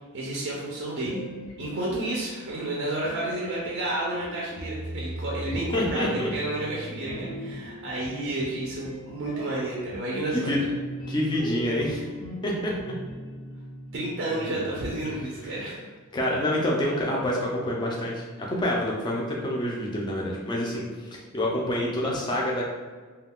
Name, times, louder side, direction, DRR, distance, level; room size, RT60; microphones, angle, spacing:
voice 1, 0.1-1.2 1.6-10.7 13.9-15.8, right 1 dB, 50° right, -4 dB, 0.5 m, -31 dB
sound 1, 1.0-2.5 3.0-15.3, equal, 70° left, 0.7 m, -40 dB
voice 2, 5.7-6.3 10.3-10.6 11.1-12.0 12.4-12.9 15.0-15.1 16.1-22.7, left 1 dB, 20° left, -3 dB, 0.4 m, -27 dB
2.3 x 2.2 x 3.5 m, 1.5 s
head